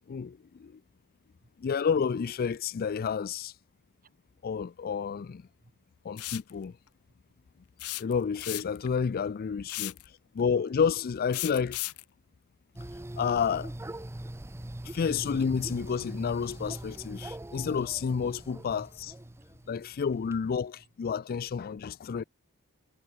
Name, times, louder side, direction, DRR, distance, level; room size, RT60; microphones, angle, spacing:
voice 1, 0.1-0.7 1.6-3.5 4.4-5.4 6.0-6.7 8.0-9.9 10.3-11.8 13.2-13.7 14.8-19.1 19.7-22.2, left 6 dB, 40° left, 0.4 m, -30 dB
sound 1, 6.2-6.5 7.8-8.9 9.7-10.1 11.3-12.0, left 18 dB, 85° left, 0.8 m, -35 dB
voice 2, 7.1-7.4 10.5-10.7 11.8-11.9 21.0-21.1, right 2 dB, 40° right, 2.8 m, -63 dB
sound 2, 12.8-20.4, right 1 dB, 10° right, 0.6 m, -42 dB
head